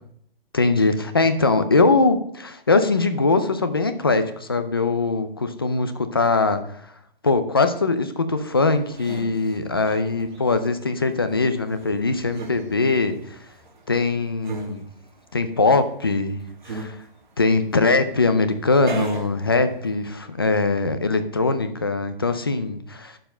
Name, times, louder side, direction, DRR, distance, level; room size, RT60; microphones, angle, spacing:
voice 1, 0.5-6.9 7.2-13.4 13.9-14.9 15.3-17.0 17.4-23.2, left 3 dB, 25° left, 9 dB, 0.5 m, -21 dB
sound 1, 8.6-20.1, right 3 dB, 55° right, 2.3 m, -39 dB
9.9 x 7.1 x 5.5 m, 0.69 s
hypercardioid pair, 175°, 29 cm